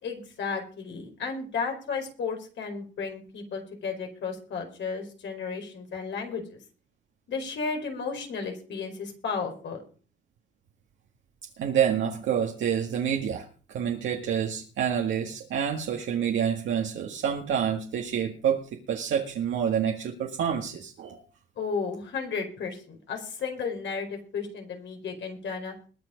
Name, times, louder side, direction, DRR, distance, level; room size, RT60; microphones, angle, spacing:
voice 1, 0.0-6.6 7.3-9.8 21.6-25.7, left 5 dB, 65° left, 3 dB, 4.9 m, -33 dB
voice 2, 11.6-18.6 18.9-21.2, right 8 dB, 75° right, 1 dB, 1.9 m, -28 dB
21.0 x 7.6 x 5.2 m, 0.40 s
cardioid pair, 90°, 20 cm